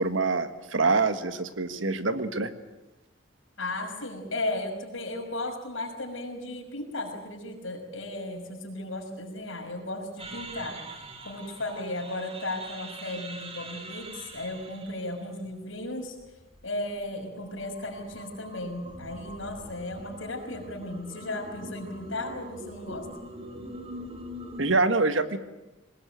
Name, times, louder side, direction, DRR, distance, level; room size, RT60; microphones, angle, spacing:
voice 1, 0.0-2.5 24.6-25.4, right 3 dB, 70° right, 10 dB, 1.5 m, -25 dB
voice 2, 3.6-10.8 11.2-16.2 16.6-23.1, left 2 dB, 75° left, 1 dB, 6.0 m, -35 dB
sound 1, 10.2-24.8, right 1 dB, 30° right, 2.2 m, -44 dB
22.0 x 19.5 x 9.1 m, 1.0 s
head